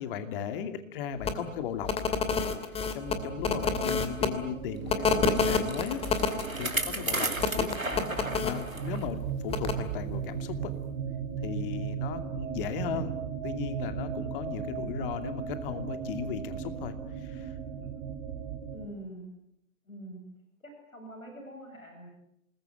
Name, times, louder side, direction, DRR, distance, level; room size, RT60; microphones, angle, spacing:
voice 1, 0.0-1.9 2.9-6.0 6.5-10.7 11.4-13.1 13.4-17.5 17.8-17.9, left 8 dB, 40° left, 8 dB, 2.7 m, -37 dB
sound 1, 1.2-1.3 1.8-4.3 4.9-6.4 7.4-8.5 9.5-9.7, left 5 dB, 15° left, 2.7 m, -27 dB
sound 2, 3.0-18.9, right 7 dB, 30° right, 3.5 m, -37 dB
Bicycle, 5.1-9.1 9.5-9.6 10.4-10.5, right 2 dB, 90° right, 2.6 m, -34 dB
voice 2, 6.7-7.0 18.7-19.3 19.9-20.2 20.6-22.1, right 1 dB, 80° left, 3 dB, 7.6 m, -45 dB
28.0 x 21.0 x 9.4 m, 0.80 s
figure-of-eight pair, 115°, 40 cm